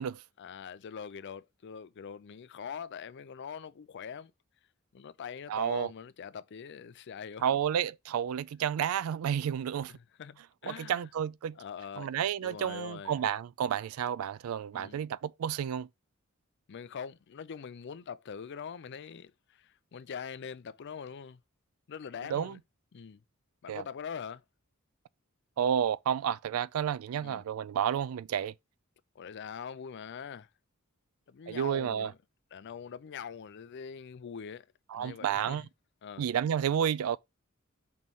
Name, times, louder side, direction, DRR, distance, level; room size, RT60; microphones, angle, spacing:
voice 1, 0.4-4.3 4.9-7.5 9.9-11.1 11.6-12.1 12.4-13.2 14.7-15.1 16.7-21.4 21.9-22.6 22.9-23.2 23.6-24.4 27.2-27.5 29.2-30.5 31.3-32.2 32.5-34.7 34.9-35.7 36.0-36.2, left 7 dB, 55° left, 0.4 m, -43 dB
voice 2, 5.5-5.9 7.4-9.9 10.7-11.6 12.0-15.9 22.3-22.6 23.7-23.8 25.6-28.5 31.5-32.1 34.9-35.7 36.2-37.2, right 9 dB, 80° right, 0.3 m, -31 dB
5.6 x 3.1 x 5.3 m
head